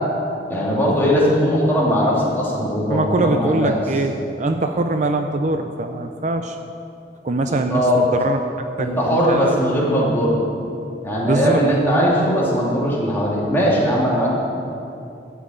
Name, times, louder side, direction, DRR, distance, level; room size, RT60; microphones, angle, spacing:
voice 1, 0.5-3.8 7.7-8.0 8.8-10.4 11.0-14.3, equal, 15° left, -6 dB, 2.6 m, -19 dB
voice 2, 2.9-6.6 7.2-8.4 8.8-9.6 11.3-11.6, right 2 dB, 45° right, 6 dB, 0.5 m, -22 dB
12.5 x 5.8 x 8.8 m, 2.6 s
head